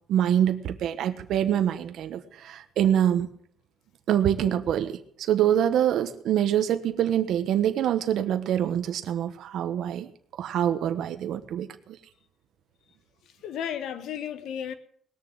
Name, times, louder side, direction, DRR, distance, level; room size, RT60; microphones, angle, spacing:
voice 1, 0.1-3.3 4.1-12.0, right 10 dB, 75° right, 8 dB, 1.0 m, -25 dB
voice 2, 13.2-14.7, left 9 dB, 80° left, 11 dB, 1.4 m, -34 dB
19.5 x 6.9 x 7.9 m, 0.63 s
cardioid pair, 90°, 0 cm